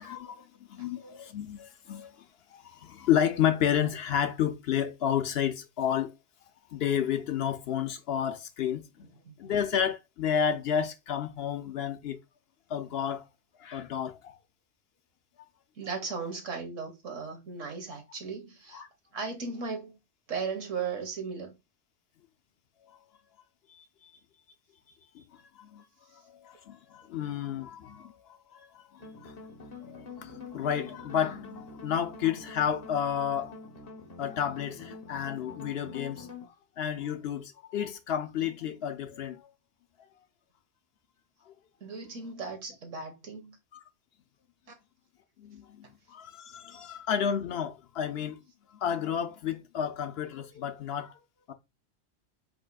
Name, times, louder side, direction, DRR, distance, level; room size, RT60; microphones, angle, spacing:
voice 1, 0.0-2.2 2.5-6.1 6.7-9.1 9.4-12.2 12.7-13.3 13.6-14.4 18.7-18.9 23.7-24.1 25.1-25.8 26.3-29.3 29.8-33.5 34.2-39.5 43.7-43.8 45.4-48.4 48.7-51.2 51.5-51.6, left 9 dB, 65° left, 0.7 m, -31 dB
voice 2, 9.0-9.5 15.8-18.8 19.1-19.9 20.3-21.5 41.8-43.6, right 5 dB, 85° right, 1.8 m, -37 dB
sound 1, 29.0-36.5, left 3 dB, 35° left, 1.0 m, -46 dB
5.0 x 4.4 x 2.3 m
omnidirectional pair, 1.3 m